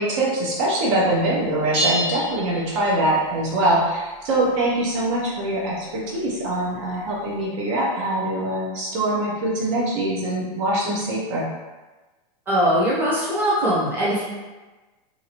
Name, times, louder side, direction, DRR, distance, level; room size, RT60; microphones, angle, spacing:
voice 1, 0.0-11.5, right 1 dB, 50° right, -3 dB, 0.6 m, -23 dB
sound 1, 1.7-3.3, equal, 65° right, 1.1 m, -27 dB
voice 2, 12.5-14.2, equal, 10° right, -8 dB, 0.7 m, -21 dB
2.8 x 2.4 x 2.8 m, 1.2 s
supercardioid pair, 160°, 20 cm